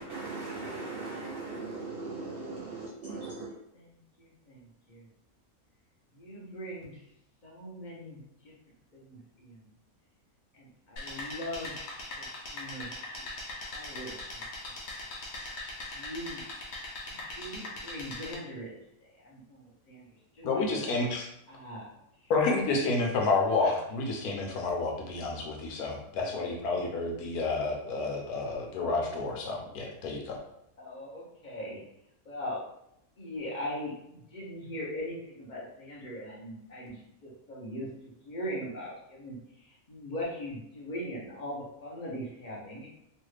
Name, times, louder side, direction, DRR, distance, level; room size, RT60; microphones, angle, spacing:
voice 1, 0.0-3.5, right 3 dB, 80° right, -1 dB, 0.5 m, -38 dB
voice 2, 3.0-5.1 6.1-7.0 7.4-8.5 8.9-9.7 10.5-11.7 12.2-13.2 13.7-14.7 15.9-16.4 17.1-20.9 21.5-21.9 22.2-22.3 23.6-23.8 25.3-25.4 26.3-26.9 27.5-27.7 30.8-31.8 32.2-32.6 33.2-37.9 38.2-42.9, equal, 35° left, -5 dB, 0.9 m, -41 dB
sound 1, 11.0-18.3, left 2 dB, 70° left, 1.2 m, -40 dB
voice 3, 20.4-21.3 22.3-30.4, left 3 dB, 85° left, 1 dB, 1.2 m, -30 dB
3.2 x 2.4 x 3.2 m, 0.79 s
omnidirectional pair, 1.5 m